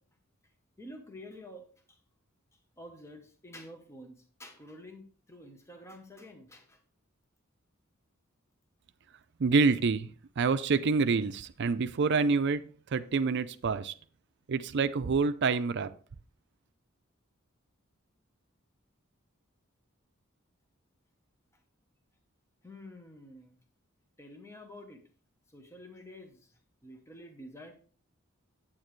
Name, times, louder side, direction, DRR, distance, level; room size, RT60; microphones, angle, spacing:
voice 1, 0.8-2.0 2.8-6.8 22.6-23.5 24.2-25.0 25.5-26.5 26.8-27.7, left 1 dB, 15° left, 4 dB, 1.0 m, -49 dB
voice 2, 9.4-12.6 12.9-13.9 14.5-15.9, right 4 dB, 55° right, 11 dB, 0.5 m, -27 dB
8.8 x 8.8 x 3.1 m, 0.41 s
head